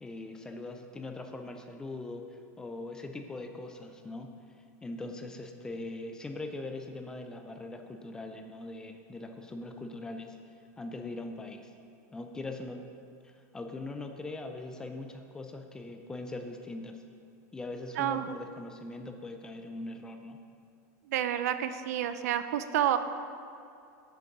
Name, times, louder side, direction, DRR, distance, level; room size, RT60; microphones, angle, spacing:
voice 1, 0.0-10.4 10.8-11.7 12.1-12.8 13.2-17.0 17.5-20.4, left 2 dB, 10° left, 5 dB, 0.4 m, -41 dB
voice 2, 21.1-23.0, right 11 dB, 75° right, 11 dB, 0.5 m, -29 dB
7.7 x 6.5 x 5.3 m, 2.5 s
supercardioid pair, 170°, 9 cm